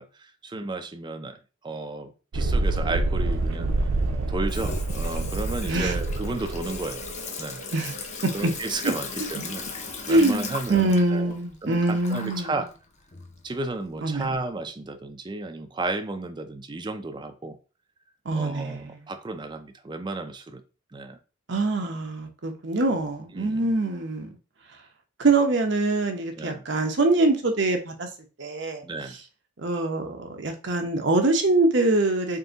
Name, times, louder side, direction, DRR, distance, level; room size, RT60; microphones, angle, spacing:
voice 1, 0.0-1.4 1.6-3.7 4.3-7.1 7.4-7.7 8.3-9.6 10.1-11.3 11.6-12.7 13.4-17.6 18.3-20.6 20.9-21.2 23.3-23.7 26.4-26.6 28.8-29.2, right 2 dB, 20° right, 0.4 m, -33 dB
Thunderstorm, 2.3-9.8, right 2 dB, 90° right, 0.5 m, -28 dB
Water tap faucet / Sink (filling or washing), 2.6-14.3, left 4 dB, 35° left, 0.6 m, -39 dB
voice 2, 10.1-12.6 14.0-14.3 18.3-19.1 21.5-24.3 25.2-28.1 28.4-28.8 29.6-32.4, right 2 dB, 60° right, 0.8 m, -24 dB
3.7 x 2.6 x 3.9 m
head